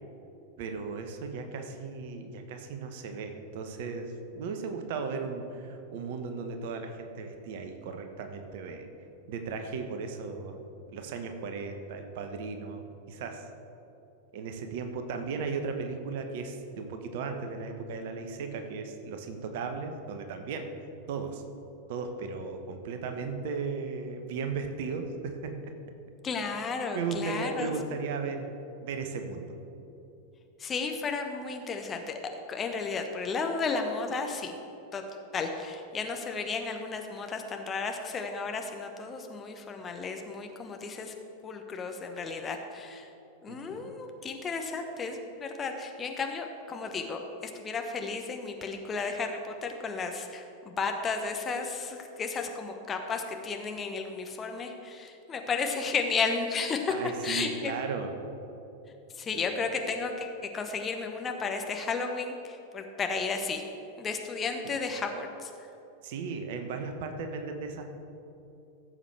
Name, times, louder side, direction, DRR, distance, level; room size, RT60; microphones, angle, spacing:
voice 1, 0.6-8.9 9.3-10.6 10.9-13.4 14.3-20.7 21.1-21.4 21.9-25.8 26.9-29.5 43.5-43.9 56.9-58.1 59.3-59.4 64.6-64.8 66.0-67.8, right 4 dB, 50° right, 6 dB, 1.0 m, -36 dB
voice 2, 26.2-27.7 30.6-32.2 32.5-34.5 34.9-35.0 35.3-41.1 41.4-43.1 43.4-56.9 57.2-57.7 59.2-60.3 60.5-63.6 64.0-65.5, left 4 dB, 20° left, 4 dB, 0.9 m, -33 dB
16.0 x 7.4 x 3.3 m, 2.9 s
figure-of-eight pair, 90°, 0 cm